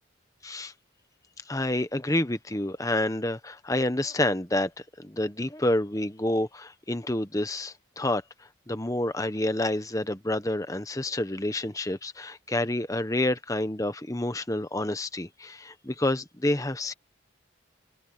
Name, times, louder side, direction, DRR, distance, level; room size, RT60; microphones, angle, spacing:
voice 1, 0.4-0.7 1.5-4.7 5.0-8.2 8.7-16.9, left 1 dB, 15° left, 1.2 m, -28 dB
open air
head